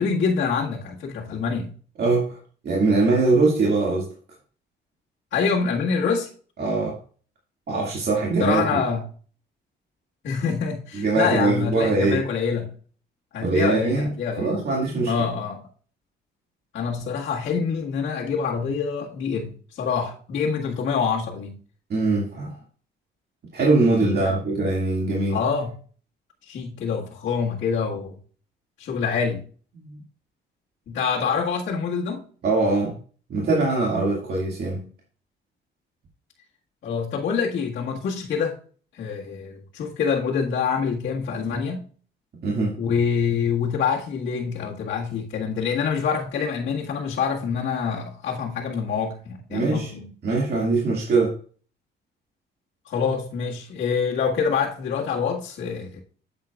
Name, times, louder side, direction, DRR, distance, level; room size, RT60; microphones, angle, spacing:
voice 1, 0.0-1.7 5.3-6.3 8.4-9.0 10.2-12.7 13.3-14.6 15.1-15.6 16.7-21.6 23.9-24.4 25.3-25.7 26.5-28.2 28.8-29.5 30.9-32.2 36.8-38.6 38.9-41.8 42.8-50.1 52.9-56.0, left 6 dB, 70° left, 1.8 m, -26 dB
voice 2, 2.0-4.1 6.6-7.0 7.7-8.8 10.9-12.3 13.4-14.1 14.4-15.1 21.9-22.5 23.5-25.4 29.8-30.0 32.4-33.0 33.3-34.8 42.4-42.7 49.5-49.9 50.2-51.4, right 3 dB, 55° right, 2.1 m, -22 dB
8.8 x 7.9 x 2.4 m
cardioid pair, 90°, 20 cm